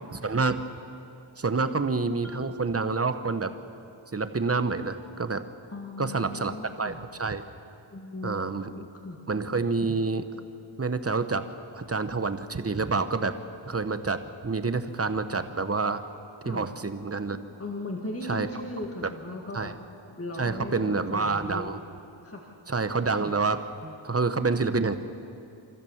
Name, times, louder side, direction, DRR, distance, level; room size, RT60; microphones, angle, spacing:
voice 1, 0.2-0.6 1.4-3.5 4.1-5.4 6.0-7.4 8.2-8.7 9.3-10.2 10.8-11.4 11.7-13.3 13.6-14.2 14.4-16.0 16.4-17.4 18.2-18.5 19.5-19.7 20.4-21.8 22.7-25.0, right 4 dB, 30° right, 10 dB, 1.0 m, -28 dB
Marimba xylophone, 2.2-4.0, right 1 dB, ahead, 1.8 m, -47 dB
voice 2, 5.7-7.0 7.9-9.2 16.4-16.7 17.6-19.7 20.1-21.7 22.2-22.5, left 2 dB, 30° left, 0 dB, 1.8 m, -37 dB
28.5 x 14.0 x 7.2 m, 2.6 s
wide cardioid pair, 110°, 49 cm